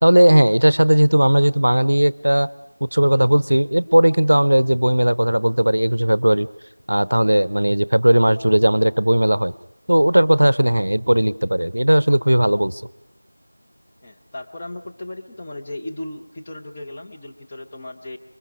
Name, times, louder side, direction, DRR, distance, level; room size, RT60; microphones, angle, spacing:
voice 1, 0.0-2.5 2.8-6.5 6.9-9.5 9.9-12.8, right 1 dB, 65° right, 18 dB, 0.7 m, -17 dB
voice 2, 14.0-18.2, left 1 dB, 10° left, -1 dB, 0.8 m, -36 dB
27.0 x 22.5 x 4.9 m, 0.89 s
figure-of-eight pair, 175°, 0 cm